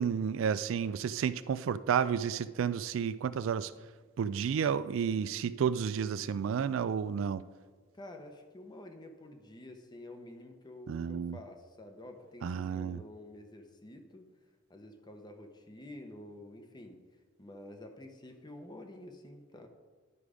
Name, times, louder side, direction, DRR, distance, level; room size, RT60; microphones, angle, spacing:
voice 1, 0.0-3.7 4.2-7.4 10.9-11.4 12.4-13.0, right 7 dB, 65° right, 15 dB, 0.3 m, -31 dB
voice 2, 7.9-14.2 14.7-17.0 17.4-19.7, left 1 dB, 20° left, 5 dB, 0.9 m, -49 dB
11.0 x 4.9 x 5.0 m, 1.4 s
head